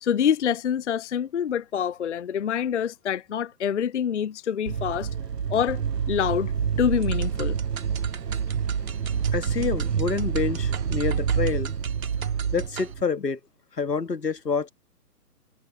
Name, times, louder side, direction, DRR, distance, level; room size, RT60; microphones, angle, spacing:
voice 1, 0.0-5.1 5.5-5.8 6.1-6.5 6.8-7.6, left 8 dB, 50° left, 0.5 m, -26 dB
sound 1, 4.7-13.0, right 7 dB, 90° right, 0.8 m, -27 dB
sound 2, 7.0-12.9, right 7 dB, 60° right, 2.9 m, -41 dB
voice 2, 9.3-11.7 12.5-13.4 13.7-14.7, left 5 dB, 85° left, 1.7 m, -27 dB
figure-of-eight pair, 135°, 47 cm